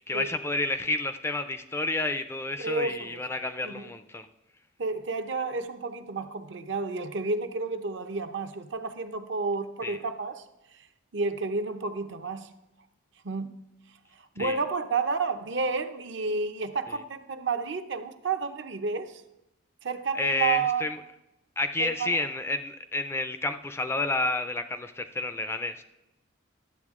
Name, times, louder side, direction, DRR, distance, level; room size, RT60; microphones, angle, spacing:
voice 1, 0.0-4.3 9.8-10.0 14.4-14.6 20.2-21.0 21.6-25.8, left 2 dB, 10° left, 10 dB, 0.4 m, -30 dB
voice 2, 2.6-3.2 3.6-3.9 4.8-10.4 11.1-12.5 13.2-13.6 14.4-19.2 19.8-20.8 21.8-22.3, right 4 dB, 60° right, 8 dB, 0.7 m, -31 dB
12.0 x 7.9 x 3.6 m, 0.92 s
head